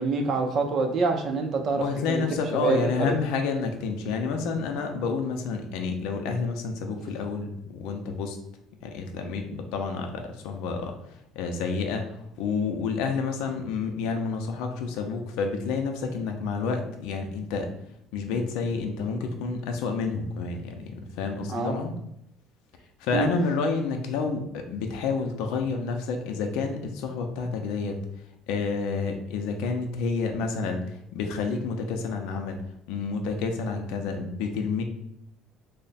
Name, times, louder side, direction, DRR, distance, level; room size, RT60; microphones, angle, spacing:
voice 1, 0.0-2.2 2.5-3.1 21.5-21.8 23.1-23.3, right 3 dB, 45° right, 4 dB, 0.5 m, -26 dB
voice 2, 1.8-8.4 8.8-10.9 11.4-12.1 12.4-17.7 18.1-21.9 23.0-28.0 28.5-32.6 32.9-34.8, left 4 dB, 80° left, 4 dB, 0.5 m, -29 dB
3.2 x 2.1 x 4.0 m, 0.78 s
cardioid pair, 135°, 0 cm